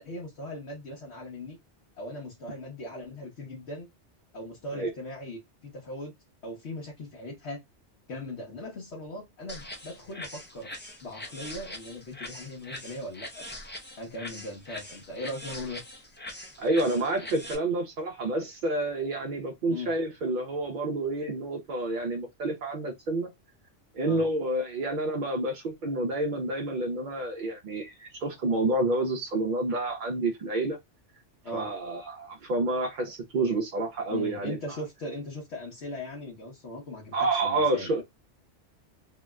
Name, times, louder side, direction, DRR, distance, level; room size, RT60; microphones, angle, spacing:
voice 1, 0.0-1.6 2.0-3.9 4.3-6.1 6.4-7.6 8.1-10.7 11.0-13.4 14.0-15.8 19.7-19.9 24.0-24.2 31.4-31.7 34.1-38.0, left 1 dB, 65° left, 1.2 m, -39 dB
sound 1, 9.5-17.5, left 1 dB, 15° left, 0.3 m, -42 dB
voice 2, 16.6-23.3 23.9-30.8 31.5-34.8 37.1-38.0, right 2 dB, 60° right, 0.5 m, -29 dB
2.8 x 2.1 x 3.4 m
omnidirectional pair, 1.2 m